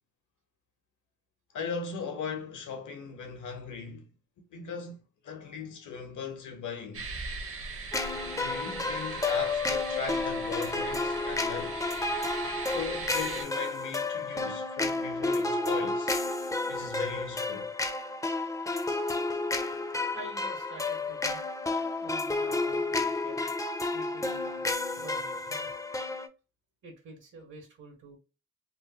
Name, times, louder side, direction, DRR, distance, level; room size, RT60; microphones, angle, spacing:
voice 1, 1.5-4.0 4.5-5.0 5.2-7.1 8.2-11.8 12.7-16.1 16.7-17.7, left 5 dB, 75° left, 0.9 m, -38 dB
sound 1, 6.9-13.5, right 4 dB, 50° right, 0.7 m, -40 dB
sound 2, 7.9-26.3, left 3 dB, 10° left, 0.4 m, -31 dB
voice 2, 19.7-21.4 22.0-23.5 23.9-25.7 26.8-28.2, right 3 dB, 80° right, 1.4 m, -48 dB
3.2 x 2.3 x 2.8 m
cardioid pair, 85°, 30 cm